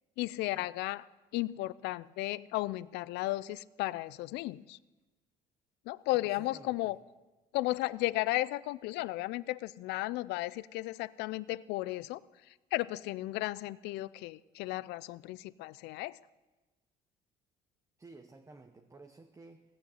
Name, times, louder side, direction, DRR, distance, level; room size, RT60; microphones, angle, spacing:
voice 1, 0.2-1.1 1.3-4.8 5.9-7.0 7.5-12.2 12.7-16.2, left 18 dB, 90° left, 19 dB, 0.4 m, -34 dB
voice 2, 6.1-7.0 18.0-19.6, right 3 dB, 15° right, 5 dB, 0.8 m, -53 dB
17.5 x 6.6 x 7.8 m, 1.2 s
cardioid pair, 110°, 17 cm